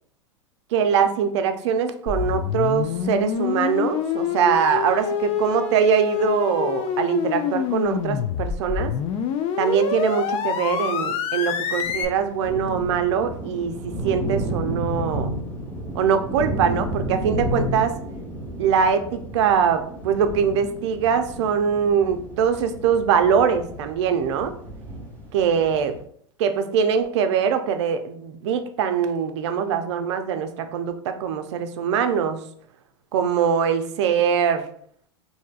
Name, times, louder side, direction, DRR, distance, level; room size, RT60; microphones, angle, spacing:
voice 1, 0.7-8.9 9.6-15.3 15.9-17.9 18.6-24.5 25.3-26.0 26.4-32.4 33.1-34.6, right 7 dB, 65° right, 8 dB, 0.5 m, -22 dB
sound 1, 2.1-12.1, left 7 dB, 40° left, 0.4 m, -26 dB
sound 2, 11.8-26.0, right 1 dB, 10° left, 1.1 m, -32 dB
4.5 x 2.7 x 2.4 m, 0.62 s
hypercardioid pair, 100°, 16 cm